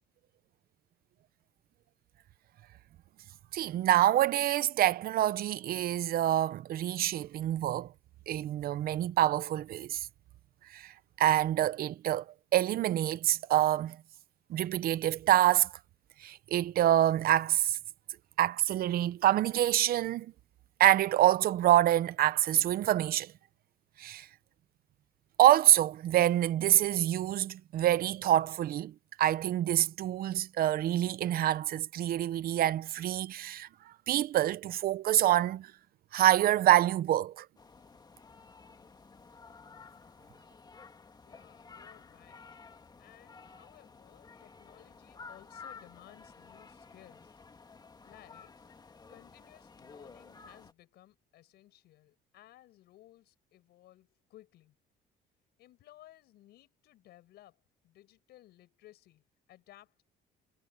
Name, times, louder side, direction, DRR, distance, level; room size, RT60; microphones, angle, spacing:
voice 1, 3.5-7.9 8.3-10.1 10.7-10.9 11.2-12.2 12.5-14.0 14.5-15.7 16.2-17.8 18.4-20.3 20.8-23.3 24.0-24.3 25.4-33.7 34.1-35.7 36.1-37.5, right 13 dB, 60° right, 0.8 m, -26 dB
sound 1, 37.6-50.7, left 5 dB, 25° left, 1.9 m, -53 dB
voice 2, 41.2-42.5 42.8-47.3 48.0-48.6 49.1-54.8 55.6-60.0, left 15 dB, 75° left, 6.1 m, -58 dB
cardioid pair, 110°, 17 cm